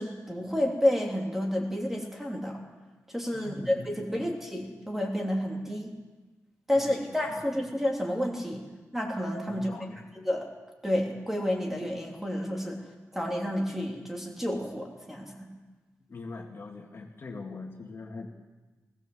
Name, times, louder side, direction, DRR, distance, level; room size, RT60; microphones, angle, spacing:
voice 1, 0.0-2.6 3.1-5.9 6.7-8.6 8.9-9.7 10.2-10.5 10.8-12.9 13.1-15.5, left 1 dB, 5° right, 0 dB, 3.1 m, -30 dB
voice 2, 3.3-3.9 4.1-4.3 6.7-7.2 9.5-10.0 16.1-18.3, left 3 dB, 45° left, 0 dB, 2.4 m, -42 dB
20.0 x 16.5 x 7.8 m, 1.2 s
wide cardioid pair, 165°, 6 cm